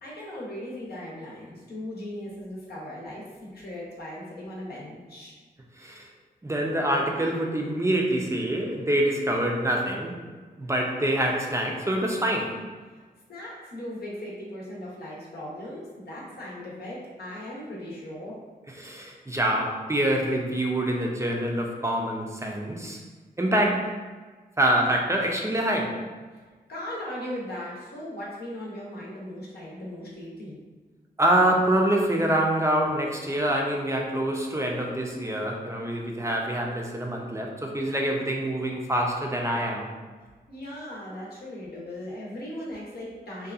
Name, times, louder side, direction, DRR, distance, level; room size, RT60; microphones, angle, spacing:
voice 1, 0.0-5.3 13.3-18.4 26.7-30.6 40.5-43.5, left 1 dB, 75° left, -5 dB, 0.8 m, -38 dB
voice 2, 5.8-6.1 6.4-10.2 10.6-12.6 18.8-23.0 23.4-24.0 24.6-26.1 31.2-39.9, right 1 dB, 15° right, 0 dB, 0.4 m, -25 dB
2.7 x 2.3 x 2.3 m, 1.4 s
cardioid pair, 55°, 17 cm